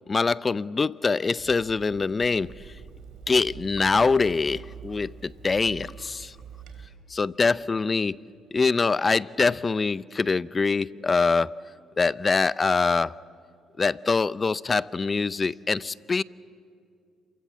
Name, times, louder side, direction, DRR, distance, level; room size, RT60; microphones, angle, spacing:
voice 1, 0.0-2.5 3.3-6.3 7.1-8.2 8.5-11.6 12.0-13.1 13.8-16.2, left 4 dB, 30° left, 0.6 m, -24 dB
Water tap faucet / Sink (filling or washing), 1.4-6.9, right 7 dB, 80° right, 3.0 m, -45 dB
28.0 x 23.5 x 7.4 m
supercardioid pair, 75°, 0 cm